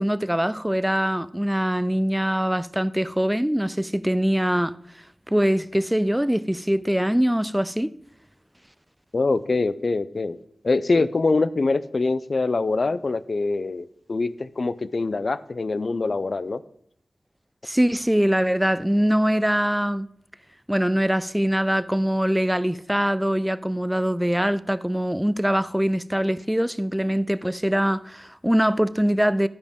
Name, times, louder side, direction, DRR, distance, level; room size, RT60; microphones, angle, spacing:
voice 1, 0.0-4.7 5.3-7.9 17.6-20.1 20.7-29.5, equal, 5° right, 0.4 m, -23 dB
voice 2, 9.1-10.4 10.6-16.6, left 3 dB, 60° left, 0.4 m, -24 dB
13.0 x 4.9 x 3.5 m
cardioid pair, 45°, 0 cm